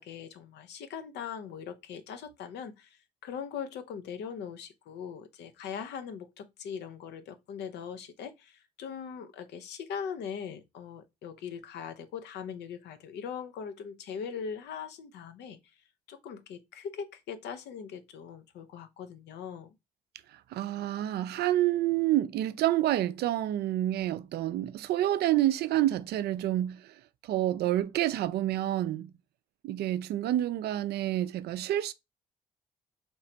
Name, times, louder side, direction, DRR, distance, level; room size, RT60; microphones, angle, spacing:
voice 1, 0.0-15.6 16.1-19.7, left 7 dB, 65° left, 0.6 m, -40 dB
voice 2, 20.5-26.8 27.3-29.1 29.6-31.9, right 13 dB, 60° right, 0.4 m, -28 dB
3.2 x 3.1 x 3.9 m
hypercardioid pair, 45°, 19 cm